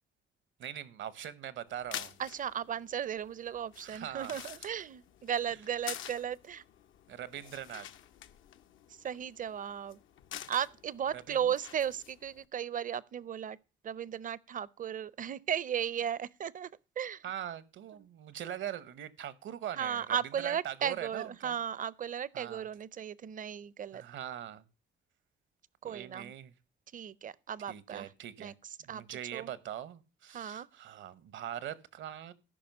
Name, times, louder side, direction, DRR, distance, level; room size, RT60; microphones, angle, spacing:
voice 1, 0.6-2.2 3.8-4.7 7.1-7.9 11.1-11.4 17.2-20.2 20.4-21.5 22.3-22.7 23.9-24.6 25.8-26.5 27.7-28.5 28.8-32.3, right 10 dB, 70° right, 0.9 m, -42 dB
sound 1, 1.7-12.4, left 10 dB, 80° left, 0.7 m, -48 dB
voice 2, 2.2-6.6 9.0-10.0 10.5-13.6 13.8-16.7 17.0-17.2 19.7-24.0 25.8-26.3 26.9-28.1 28.4-28.5 28.9-29.0 29.3-29.5 30.3-30.7, right 9 dB, 40° right, 0.5 m, -35 dB
14.0 x 5.5 x 5.3 m
cardioid pair, 90°, 20 cm